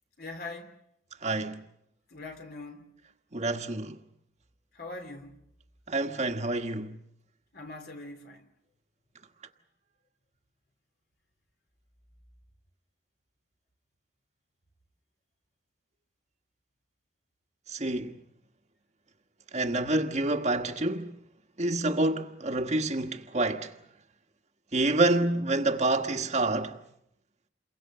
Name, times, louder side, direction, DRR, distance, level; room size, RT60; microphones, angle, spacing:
voice 1, 0.2-0.8 2.1-2.9 4.7-5.4 7.5-8.5, left 2 dB, 60° left, 3.4 m, -42 dB
voice 2, 1.2-1.6 3.3-4.0 5.9-7.0 17.7-18.2 19.5-21.2 21.6-23.7 24.7-26.8, right 2 dB, 40° right, 1.5 m, -28 dB
29.0 x 23.0 x 6.8 m
head